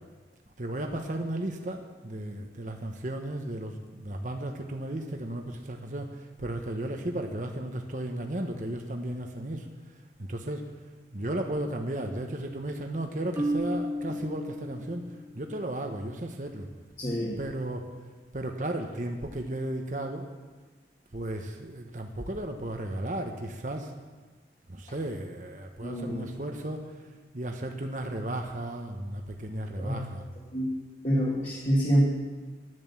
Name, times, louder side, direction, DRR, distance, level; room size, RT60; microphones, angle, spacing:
voice 1, 0.6-9.9 10.2-10.6 11.1-16.7 17.4-17.9 18.3-20.3 21.1-23.9 24.7-30.2, right 1 dB, 45° right, 3 dB, 1.0 m, -34 dB
Marimba xylophone, 13.4-15.4, equal, 15° right, 2.0 m, -32 dB
voice 2, 17.0-17.3 25.8-26.2 29.8-30.1 30.5-30.7 31.0-32.0, equal, 40° left, -7 dB, 2.3 m, -26 dB
11.0 x 10.5 x 7.2 m, 1.4 s
head